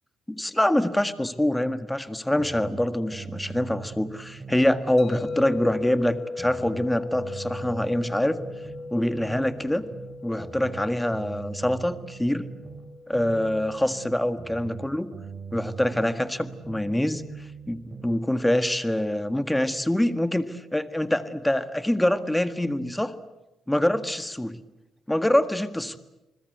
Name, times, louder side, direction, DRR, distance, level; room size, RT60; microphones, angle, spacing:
voice 1, 0.3-8.4 8.9-9.8 10.2-12.5 13.1-15.1 15.5-17.2 17.7-23.1 23.7-24.6 25.1-26.0, left 1 dB, 5° left, 11 dB, 1.7 m, -25 dB
sound 1, 2.4-4.9 5.1-8.9 9.1-12.9 13.1-16.9 17.1-18.2, right 6 dB, 40° right, 4.4 m, -41 dB
sound 2, 5.0-15.1, left 3 dB, 50° left, 1.8 m, -38 dB
28.5 x 21.0 x 8.1 m, 0.99 s
cardioid pair, 90°, 0 cm